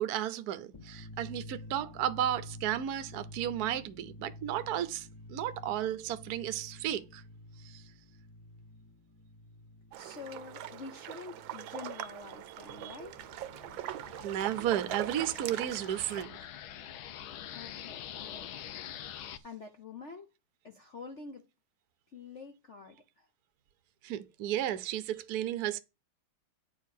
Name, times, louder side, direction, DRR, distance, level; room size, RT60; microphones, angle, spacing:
voice 1, 0.0-7.2 7.6-7.8 12.8-12.9 14.2-16.3 24.0-25.8, right 11 dB, 60° right, 1.2 m, -33 dB
sound 1, 0.7-12.2, left 1 dB, 15° left, 1.0 m, -50 dB
sound 2, 9.9-16.2, right 12 dB, 75° right, 1.4 m, -42 dB
voice 2, 10.0-13.3 17.5-18.5 19.4-20.3 20.6-21.5 22.1-23.3, left 4 dB, 45° left, 1.1 m, -47 dB
sound 3, 12.1-19.4, left 10 dB, 80° left, 1.7 m, -46 dB
9.7 x 4.7 x 6.5 m
omnidirectional pair, 2.2 m